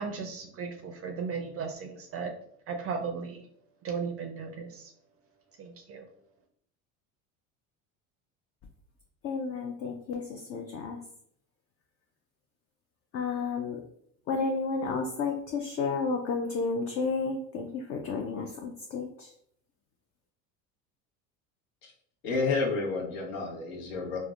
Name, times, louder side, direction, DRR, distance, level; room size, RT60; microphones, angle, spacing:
voice 1, 0.0-2.3 2.7-3.5 3.8-4.9 5.6-6.1, right 5 dB, 35° right, 4 dB, 0.4 m, -36 dB
voice 2, 9.2-11.0 13.1-13.8 14.3-19.3, left 4 dB, 35° left, 3 dB, 0.4 m, -32 dB
voice 3, 22.2-24.2, left 4 dB, 70° left, -1 dB, 1.0 m, -30 dB
3.3 x 2.2 x 2.4 m, 0.67 s
supercardioid pair, 85°, 41 cm